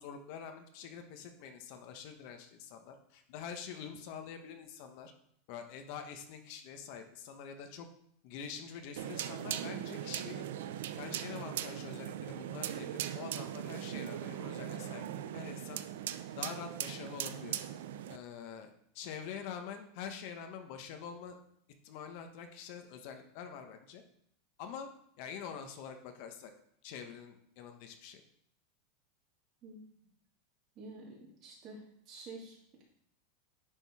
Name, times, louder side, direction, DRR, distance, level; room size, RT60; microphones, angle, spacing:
voice 1, 0.0-5.1 5.5-7.9 8.2-10.5 11.0-15.0 15.3-15.8 16.4-17.6 18.1-21.4 21.8-24.0 24.6-24.9 25.2-26.5 26.8-28.2, left 7 dB, 55° left, 6 dB, 1.0 m, -45 dB
sound 1, 9.0-18.2, right 11 dB, 80° right, 0.5 m, -39 dB
voice 2, 30.7-32.8, right 3 dB, 40° right, -4 dB, 2.8 m, -49 dB
9.9 x 3.8 x 4.8 m, 0.67 s
supercardioid pair, 155°, 0 cm